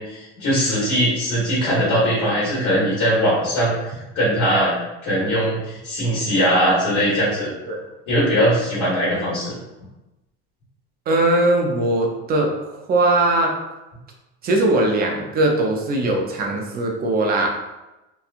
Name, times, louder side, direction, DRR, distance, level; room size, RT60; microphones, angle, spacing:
voice 1, 0.0-3.8 4.1-4.7 5.0-7.5 8.1-9.6, equal, 60° left, -8 dB, 1.2 m, -20 dB
voice 2, 11.1-13.5 14.4-17.5, right 2 dB, 30° right, 1 dB, 0.5 m, -20 dB
2.9 x 2.2 x 2.4 m, 1.0 s
cardioid pair, 135°, 31 cm